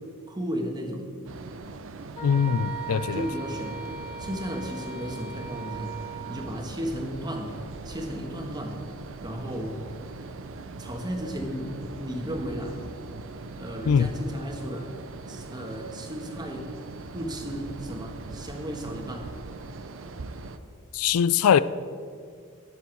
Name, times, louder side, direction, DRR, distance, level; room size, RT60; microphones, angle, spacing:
voice 1, 0.3-1.1 3.1-3.8 4.2-6.0 6.3-7.6 7.8-8.9 9.2-9.8 10.8-12.8 13.6-14.9 15.3-16.7 17.1-19.3, equal, 20° right, 1.4 m, -34 dB
sound 1, 1.2-20.6, right 3 dB, 65° right, 0.6 m, -41 dB
Wind instrument woodwind instrument, 2.1-6.5, right 6 dB, 25° left, 2.0 m, -39 dB
voice 2, 2.2-3.3 13.9-14.1 20.9-21.6, left 7 dB, 90° left, 0.4 m, -22 dB
19.0 x 7.1 x 4.6 m
head